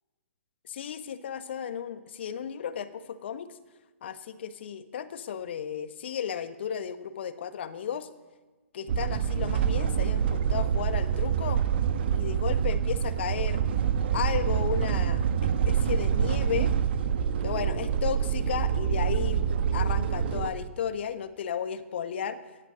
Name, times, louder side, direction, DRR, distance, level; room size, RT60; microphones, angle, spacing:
voice 1, 0.6-3.6 4.0-8.1 8.7-11.6 12.1-13.7 14.1-16.7 17.4-19.5 19.7-22.5, left 8 dB, 55° left, 10 dB, 1.5 m, -34 dB
sound 1, 8.9-20.5, right 8 dB, 50° right, 1.2 m, -26 dB
18.0 x 12.0 x 6.4 m, 1.2 s
figure-of-eight pair, 125°, 7 cm